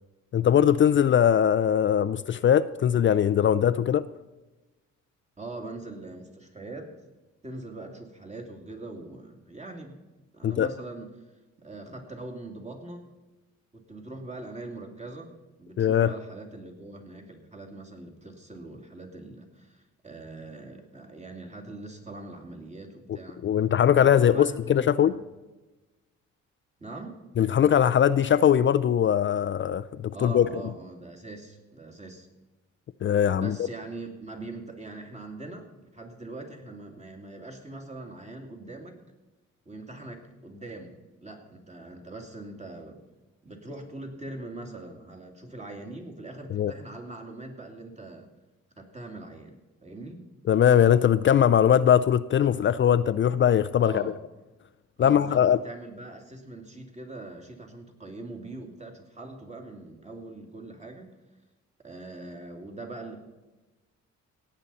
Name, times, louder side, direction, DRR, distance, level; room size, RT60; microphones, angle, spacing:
voice 1, 0.3-4.0 10.4-10.7 15.8-16.1 23.4-25.1 27.4-30.4 33.0-33.6 46.5-46.7 50.5-54.0 55.0-55.6, left 9 dB, 40° left, 14 dB, 0.4 m, -21 dB
voice 2, 5.4-6.9 7.4-10.0 10.3-11.1 11.6-13.1 13.7-23.5 23.9-25.2 26.8-27.2 30.1-32.3 33.3-39.0 39.7-43.0 43.4-48.3 48.8-50.3 53.8-54.2 55.0-61.1 61.8-63.2, right 2 dB, 20° right, 2 dB, 2.5 m, -42 dB
17.0 x 8.6 x 4.1 m, 1.1 s
cardioid pair, 90°, 30 cm